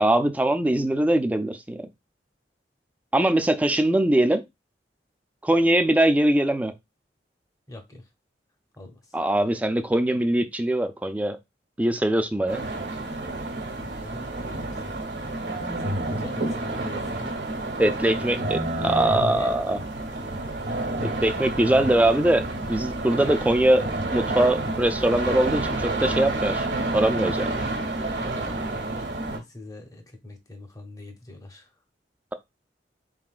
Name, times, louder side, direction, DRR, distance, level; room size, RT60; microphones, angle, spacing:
voice 1, 0.0-1.9 3.1-4.4 5.4-6.7 9.1-11.4 11.8-12.6 17.8-19.8 21.0-26.7 26.9-27.5, right 1 dB, 10° right, 0.4 m, -22 dB
voice 2, 7.7-8.1 8.8-9.2 13.8-15.5 15.8-17.4 17.7-17.9 18.2-19.6 27.9-31.8, left 2 dB, 20° left, 0.8 m, -42 dB
sound 1, 12.5-29.4, right 2 dB, 80° right, 1.2 m, -29 dB
3.9 x 3.7 x 2.4 m
head